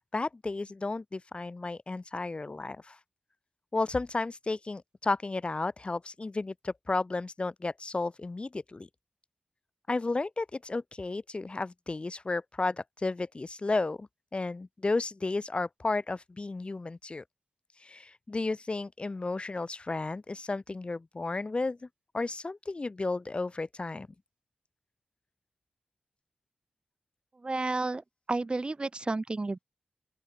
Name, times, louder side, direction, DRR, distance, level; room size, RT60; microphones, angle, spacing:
voice 1, 0.0-3.0 3.7-8.9 9.9-17.2 17.8-21.9 22.1-24.1, left 3 dB, 40° left, 3.7 m, -33 dB
voice 2, 27.4-29.6, right 3 dB, 35° right, 2.7 m, -32 dB
open air
cardioid pair, 55°, 3 cm